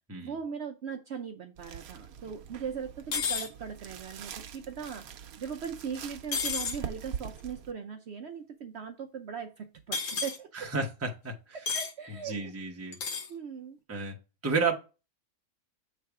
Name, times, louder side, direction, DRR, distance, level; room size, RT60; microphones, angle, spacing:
voice 1, 0.1-5.1 5.4-10.7 11.5-12.5 13.3-13.8, right 6 dB, 60° right, 5 dB, 0.8 m, -39 dB
sound 1, 1.6-7.7, right 8 dB, 85° right, 1.1 m, -43 dB
sound 2, 3.1-3.5 6.3-6.8 9.9-10.4 11.7-11.9 12.9-13.3, left 5 dB, 65° left, 1.3 m, -31 dB
voice 2, 10.5-11.3 12.2-13.0 13.9-14.2 14.4-14.7, right 4 dB, 15° right, 2 dB, 0.7 m, -31 dB
7.7 x 3.3 x 4.7 m, 0.32 s
omnidirectional pair, 1.5 m